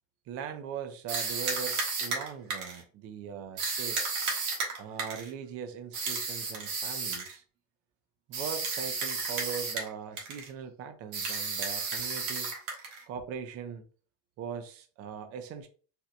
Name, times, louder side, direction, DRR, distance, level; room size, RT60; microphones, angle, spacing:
voice 1, 0.3-4.0 4.8-7.4 8.3-12.5 13.1-13.9 14.4-15.7, right 7 dB, 45° right, 0.5 m, -40 dB
sound 1, 1.1-2.8 3.6-5.3 5.9-7.3 8.3-9.9 10.2-10.5 11.1-13.0, right 4 dB, 75° right, 1.4 m, -33 dB
4.3 x 2.1 x 2.5 m
cardioid pair, 145°, 34 cm